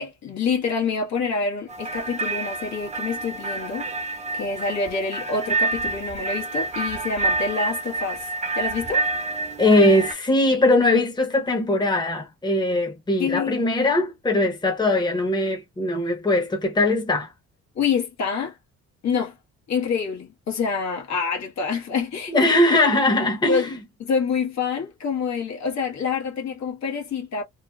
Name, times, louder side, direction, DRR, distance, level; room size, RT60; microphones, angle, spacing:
voice 1, 0.0-3.9 4.3-8.3 8.5-9.0 13.2-13.6 17.7-18.6 19.0-19.4 19.7-22.5 23.5-23.7 24.0-27.4, left 5 dB, 65° left, 1.2 m, -26 dB
sound 1, 1.7-10.1, right 3 dB, 25° right, 0.8 m, -28 dB
voice 2, 9.6-17.3 22.3-23.8, left 2 dB, 15° left, 0.9 m, -20 dB
3.0 x 2.1 x 2.2 m
cardioid pair, 90°, 30 cm